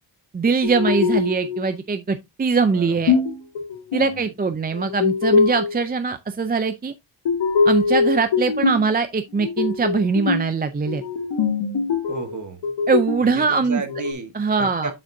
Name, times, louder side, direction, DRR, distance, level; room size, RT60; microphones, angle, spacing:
voice 1, 0.3-3.1 3.9-6.9 7.7-11.0 12.9-13.8 14.3-14.9, right 4 dB, 20° right, 0.4 m, -22 dB
sound 1, 0.6-1.7 3.1-4.2 4.7-5.8 7.3-8.9 9.4-10.5 10.9-12.4 12.6-14.1, left 5 dB, 80° left, 1.6 m, -22 dB
voice 2, 2.7-3.2 4.0-4.1 12.1-12.6 13.2-14.3 14.6-14.9, right 4 dB, 40° right, 1.3 m, -33 dB
7.5 x 6.6 x 2.6 m
wide cardioid pair, 155°, 44 cm